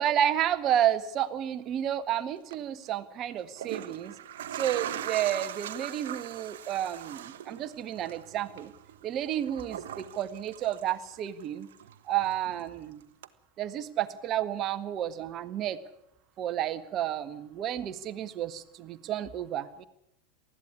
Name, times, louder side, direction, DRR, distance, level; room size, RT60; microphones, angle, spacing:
voice 1, 0.0-4.1 4.5-8.7 9.0-11.7 12.1-13.0 13.6-15.8 16.4-19.8, right 11 dB, 40° right, 11 dB, 1.6 m, -31 dB
sound 1, 2.4-2.6 3.4-11.4 11.7-12.8 13.2-13.3, right 10 dB, 70° right, 1.2 m, -40 dB
20.0 x 14.0 x 9.8 m, 0.78 s
hypercardioid pair, 90°, 0 cm